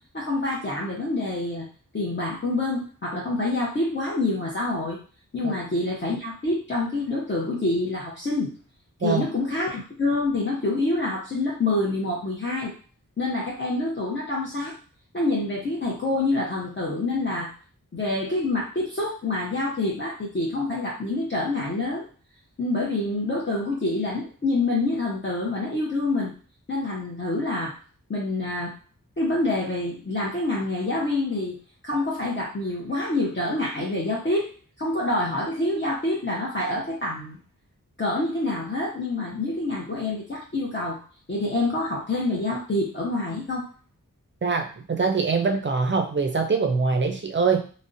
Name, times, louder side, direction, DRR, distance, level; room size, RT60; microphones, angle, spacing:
voice 1, 0.1-1.7 1.9-5.0 5.3-8.5 9.0-12.7 13.2-14.7 15.1-17.5 17.9-22.1 22.6-26.3 26.7-27.7 28.1-28.7 29.2-31.6 31.8-34.5 34.8-37.4 38.0-41.0 41.3-43.7, left 2 dB, 35° left, -5 dB, 0.6 m, -26 dB
voice 2, 44.4-47.7, right 4 dB, 35° right, 5 dB, 0.4 m, -23 dB
2.4 x 2.0 x 2.5 m, 0.40 s
wide cardioid pair, 55°, 33 cm